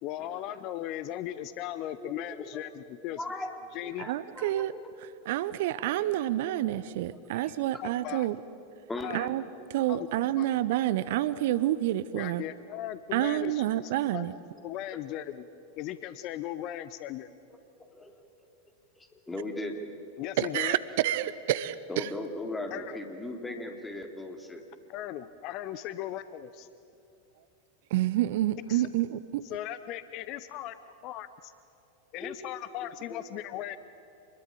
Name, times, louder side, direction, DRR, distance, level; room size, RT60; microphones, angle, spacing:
voice 1, 0.0-3.2 3.7-4.1 7.8-8.3 9.0-9.3 9.9-10.1 10.4-10.5 12.1-14.3 14.6-15.4 15.8-17.3 20.2-20.8 22.7-23.0 24.9-26.5 28.7-28.9 29.4-30.7 31.0-31.5 32.1-33.8, left 13 dB, 40° left, 14 dB, 0.8 m, -37 dB
voice 2, 2.0-2.5 3.1-3.5 3.8-4.8 6.7-6.8 7.3-7.8 8.9-9.1 14.9-15.3 17.9-18.2 19.0-19.8 21.9-24.6 32.2-33.2 33.5-33.8, left 2 dB, 10° left, 4 dB, 3.0 m, -39 dB
voice 3, 4.1-4.7 5.3-8.4 9.1-9.4 9.7-12.4 13.1-14.3 20.4-20.8 21.0-22.1 27.9-29.4, right 14 dB, 50° right, 16 dB, 0.7 m, -28 dB
27.5 x 21.5 x 8.7 m, 2.7 s
figure-of-eight pair, 90°, 0 cm